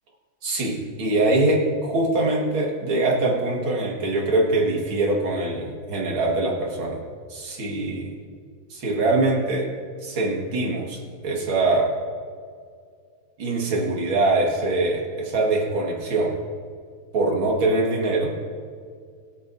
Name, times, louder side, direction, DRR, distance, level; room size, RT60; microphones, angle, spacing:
voice 1, 0.4-7.0 7.3-8.2 8.7-9.7 10.0-12.0 13.4-16.3 17.1-18.4, right 2 dB, 70° right, -1 dB, 2.8 m, -23 dB
24.5 x 8.7 x 2.7 m, 2.1 s
omnidirectional pair, 2.3 m